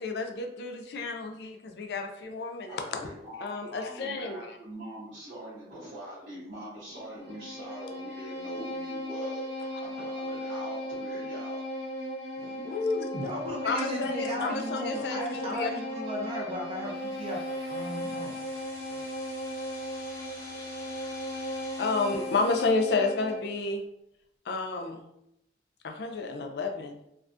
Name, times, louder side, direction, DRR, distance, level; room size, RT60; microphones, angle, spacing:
voice 1, 0.0-2.8 3.4-4.4 12.7-13.0 13.6-15.7 21.8-23.8 24.5-25.0 25.8-27.0, left 3 dB, 65° left, 4 dB, 0.3 m, -30 dB
voice 2, 2.7-11.6 12.4-13.1, right 1 dB, 85° right, -9 dB, 1.0 m, -43 dB
Bowed string instrument, 6.9-23.5, left 1 dB, 60° right, 0.8 m, -36 dB
voice 3, 13.1-17.4 17.7-18.4, equal, 30° right, -2 dB, 0.6 m, -36 dB
sound 1, 16.6-22.7, left 1 dB, 15° left, 0.8 m, -48 dB
2.4 x 2.2 x 2.5 m, 0.81 s
head